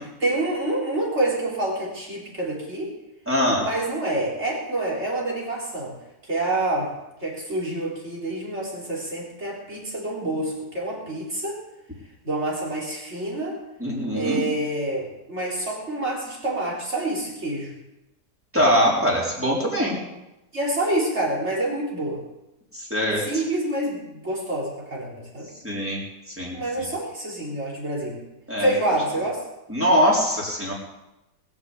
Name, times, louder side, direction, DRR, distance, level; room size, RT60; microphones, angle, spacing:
voice 1, 0.2-2.9 3.6-5.9 6.3-6.9 7.2-11.6 12.2-13.6 14.1-17.7 20.5-22.2 23.2-25.5 26.5-28.2 28.6-29.4, right 2 dB, 40° right, -3 dB, 4.6 m, -27 dB
voice 2, 3.3-3.7 13.8-14.4 18.5-20.0 22.7-23.4 25.6-26.0 26.3-26.8 28.5-28.7 29.7-30.7, equal, 5° right, -4 dB, 4.3 m, -22 dB
21.0 x 7.1 x 8.1 m, 0.94 s
omnidirectional pair, 1.8 m